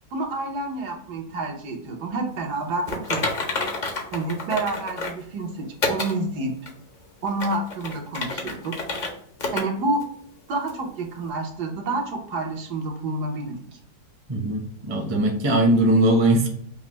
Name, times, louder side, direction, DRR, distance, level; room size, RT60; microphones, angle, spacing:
voice 1, 0.1-3.3 4.1-6.5 7.2-8.8 9.5-10.0 10.5-13.6, right 2 dB, 80° right, 2 dB, 1.4 m, -28 dB
Typing, 2.9-5.2 5.8-6.1 6.7-6.8 7.3-9.1 9.4-9.6 10.0-10.1 10.7-10.8, left 3 dB, 50° left, 0.5 m, -29 dB
voice 2, 14.3-16.5, right 1 dB, 25° right, 1 dB, 0.5 m, -20 dB
5.5 x 2.0 x 3.0 m, 0.65 s
omnidirectional pair, 1.7 m